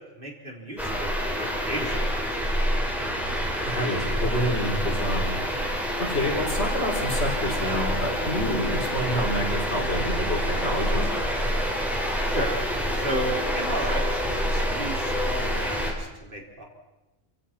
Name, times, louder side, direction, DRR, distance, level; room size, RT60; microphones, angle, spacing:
voice 1, 0.2-2.4 12.3-12.6 12.9-16.6, right 1 dB, 40° right, -1 dB, 4.0 m, -33 dB
sound 1, 0.8-15.9, equal, ahead, 3.9 m, -27 dB
voice 2, 3.7-5.4 6.0-11.1, equal, 50° left, -1 dB, 4.8 m, -28 dB
28.0 x 16.5 x 6.0 m, 1.0 s
omnidirectional pair, 1.4 m